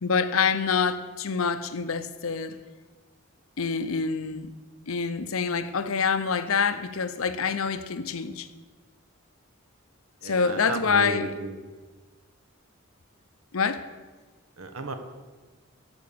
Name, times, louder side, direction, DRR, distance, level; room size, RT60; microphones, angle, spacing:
voice 1, 0.0-2.6 3.6-4.5 4.9-8.5 10.2-11.3 13.5-13.8, left 5 dB, 85° left, 0.7 m, -26 dB
voice 2, 10.2-11.7 14.6-14.9, right 2 dB, 90° right, 1.3 m, -33 dB
12.5 x 5.3 x 8.5 m
head